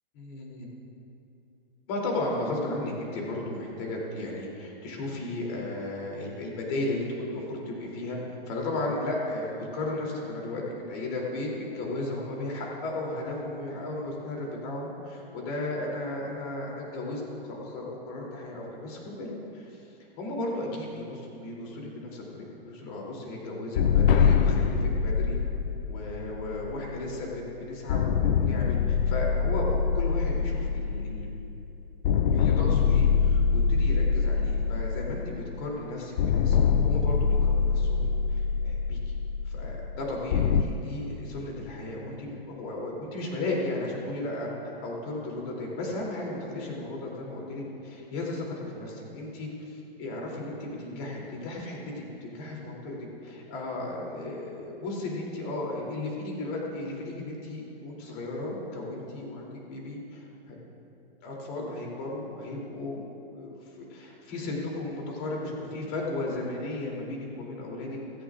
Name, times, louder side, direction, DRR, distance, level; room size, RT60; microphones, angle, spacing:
voice 1, 0.1-0.7 1.9-8.2 8.5-19.9 20.2-25.4 25.9-31.3 32.3-39.1 39.5-53.0 53.2-60.6 61.2-68.0, left 2 dB, 40° left, -2 dB, 3.1 m, -35 dB
sound 1, 23.8-27.3 27.9-31.7 32.0-35.7 36.2-40.6, left 6 dB, 60° left, 0.6 m, -24 dB
16.0 x 15.0 x 2.5 m, 2.7 s
hypercardioid pair, 145°, 32 cm